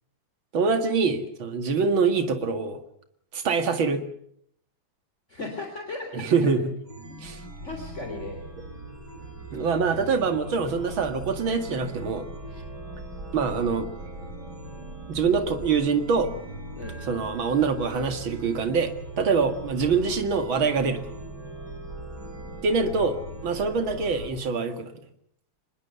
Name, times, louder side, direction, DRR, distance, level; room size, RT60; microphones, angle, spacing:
voice 1, 0.5-2.8 3.3-4.1 6.1-6.7 7.2-7.4 9.5-12.3 13.3-13.9 15.1-16.3 17.1-21.0 22.6-23.2 23.4-24.9, right 5 dB, 65° right, 8 dB, 2.8 m, -24 dB
voice 2, 5.3-6.5 7.6-8.5 16.7-17.0, left 2 dB, 30° left, 3 dB, 3.8 m, -36 dB
Chime, 6.8-24.3, right 2 dB, 50° right, 5.4 m, -40 dB
25.0 x 21.5 x 7.0 m, 0.69 s
omnidirectional pair, 2.3 m